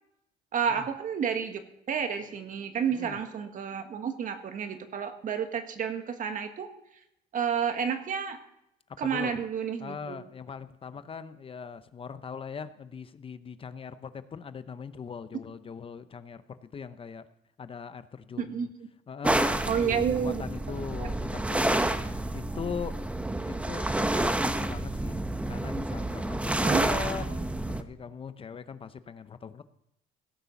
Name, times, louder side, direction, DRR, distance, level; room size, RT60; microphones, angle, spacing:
voice 1, 0.5-1.6 1.9-6.7 7.3-8.4 9.0-10.2 18.4-18.7 19.7-20.4 20.7-21.1 26.6-27.2, right 7 dB, 50° right, 7 dB, 1.7 m, -30 dB
voice 2, 9.0-9.4 9.8-17.3 17.6-18.7 19.1-23.1 23.4-25.2 25.4-29.7, left 6 dB, 35° left, 12 dB, 0.7 m, -40 dB
sound 1, 19.2-27.8, right 1 dB, 5° right, 0.8 m, -29 dB
17.0 x 6.7 x 7.0 m, 0.80 s
cardioid pair, 110°, 17 cm